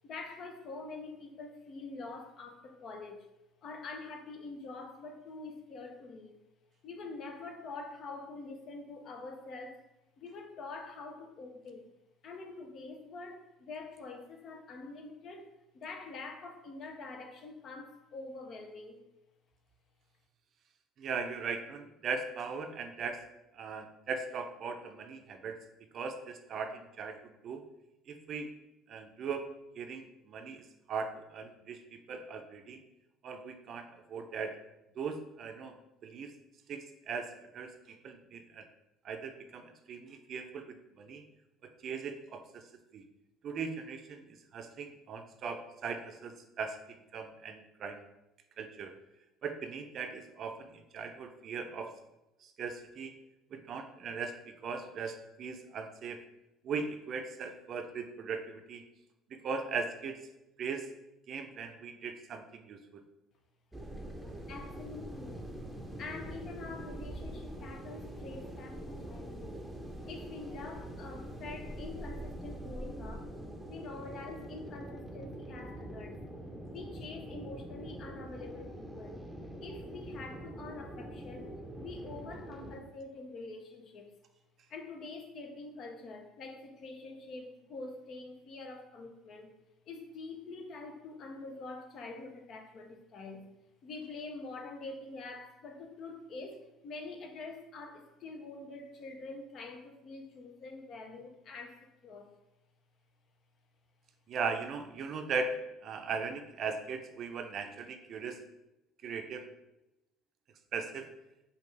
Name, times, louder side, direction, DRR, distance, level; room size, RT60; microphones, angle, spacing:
voice 1, 0.0-3.3 3.6-6.3 6.8-9.8 10.2-11.9 12.2-19.0 64.5-65.5 66.0-69.6 70.1-73.3 73.7-76.2 76.7-79.3 79.6-84.1 84.7-89.5 89.9-93.5 93.8-102.3, left 3 dB, 55° left, 4 dB, 0.6 m, -45 dB
voice 2, 21.0-23.2 23.5-25.6 25.9-27.2 27.4-27.6 28.1-28.5 28.9-29.5 29.8-32.8 33.2-34.5 35.0-35.8 36.0-36.3 36.7-38.7 39.0-41.2 41.6-42.6 42.9-43.0 43.4-48.0 48.6-48.9 49.4-51.9 52.4-53.1 53.5-56.2 56.6-58.8 59.3-60.2 60.6-60.9 61.3-63.0 104.3-105.6 105.8-108.4 109.0-109.4 110.7-111.1, right 5 dB, 55° right, 6 dB, 0.5 m, -39 dB
sound 1, 63.7-82.8, right 1 dB, 5° right, 0.7 m, -44 dB
5.0 x 2.4 x 3.3 m, 0.92 s
supercardioid pair, 90°, 0 cm